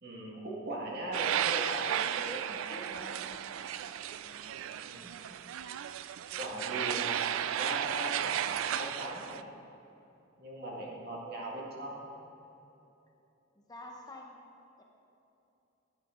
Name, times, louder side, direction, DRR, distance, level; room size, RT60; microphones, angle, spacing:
voice 1, 0.0-3.2 4.8-5.2 6.3-7.3 7.6-8.4 8.7-9.5 10.4-12.1, right 1 dB, 50° right, -3 dB, 1.8 m, -39 dB
sound 1, 1.1-9.4, right 10 dB, 75° right, 0.3 m, -34 dB
voice 2, 4.2-4.7 6.3-6.9 13.6-14.4 14.8-14.9, left 1 dB, 20° left, 0 dB, 0.7 m, -50 dB
11.0 x 8.9 x 3.8 m, 2.9 s
head